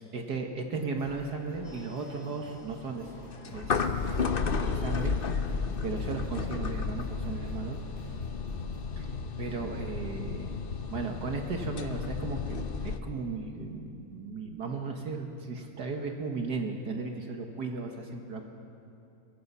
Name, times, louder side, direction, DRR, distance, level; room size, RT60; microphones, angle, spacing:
voice 1, 0.1-3.1 3.5-4.3 4.6-5.1 5.8-7.8 9.0-10.6 10.9-18.5, right 4 dB, 55° right, 3 dB, 1.9 m, -36 dB
Singing, 0.9-8.9, right 1 dB, 15° right, 4.2 m, -52 dB
sound 1, 1.7-13.0, left 5 dB, 60° left, 0.5 m, -33 dB
23.5 x 21.5 x 5.6 m, 2.8 s
omnidirectional pair, 2.2 m